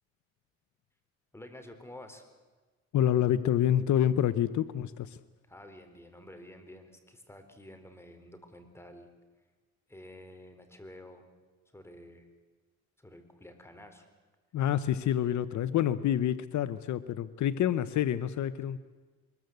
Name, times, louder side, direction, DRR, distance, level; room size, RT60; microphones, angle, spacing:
voice 1, 1.3-2.2 5.5-9.1 9.9-11.2 11.7-12.3 13.0-14.1, left 1 dB, 10° left, 6 dB, 4.0 m, -50 dB
voice 2, 2.9-5.2 14.5-18.8, left 10 dB, 70° left, 14 dB, 0.9 m, -27 dB
24.0 x 21.5 x 8.0 m, 1.3 s
cardioid pair, 90°, 30 cm